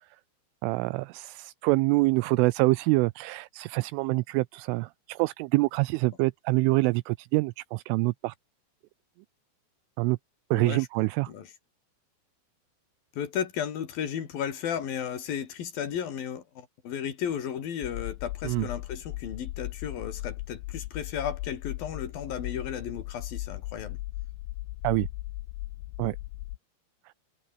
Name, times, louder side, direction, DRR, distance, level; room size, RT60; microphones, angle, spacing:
voice 1, 0.6-8.3 10.0-10.2 10.5-11.3 18.4-18.7 24.8-25.1 26.0-26.2, right 23 dB, 85° right, 3.0 m, -26 dB
voice 2, 10.5-11.5 13.1-24.0, left 8 dB, 50° left, 4.2 m, -34 dB
sound 1, 17.8-26.6, left 19 dB, 85° left, 2.4 m, -38 dB
omnidirectional pair, 5.8 m